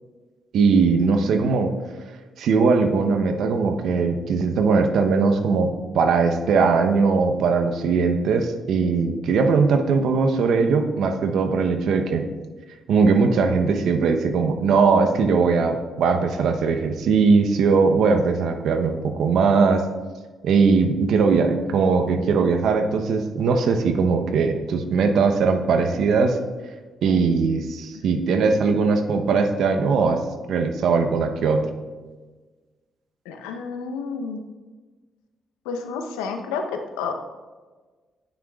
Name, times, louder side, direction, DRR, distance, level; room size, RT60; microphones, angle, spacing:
voice 1, 0.5-1.7 2.4-12.3 12.9-19.8 20.4-26.4 27.0-30.2 30.5-31.7, right 4 dB, 75° right, 6 dB, 0.8 m, -20 dB
voice 2, 33.2-34.4 35.6-37.1, left 5 dB, 90° left, 5 dB, 0.8 m, -30 dB
11.5 x 9.5 x 2.4 m, 1.3 s
hypercardioid pair, 50°, 0 cm